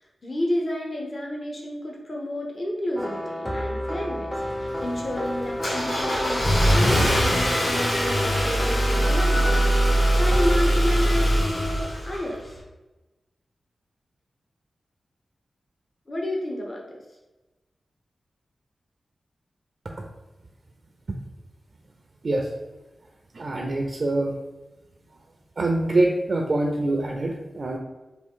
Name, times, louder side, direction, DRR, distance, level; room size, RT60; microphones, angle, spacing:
voice 1, 0.2-4.3 4.6-12.5 16.1-17.0, left 1 dB, 45° left, -1 dB, 0.6 m, -31 dB
sound 1, 3.0-10.6, equal, ahead, 0.4 m, -31 dB
Car / Engine starting, 4.4-12.5, equal, 70° left, 1.3 m, -22 dB
voice 2, 23.3-24.4 25.6-27.8, right 2 dB, 60° right, 1 dB, 0.4 m, -24 dB
3.5 x 2.3 x 3.6 m, 1.1 s
cardioid pair, 55°, 0 cm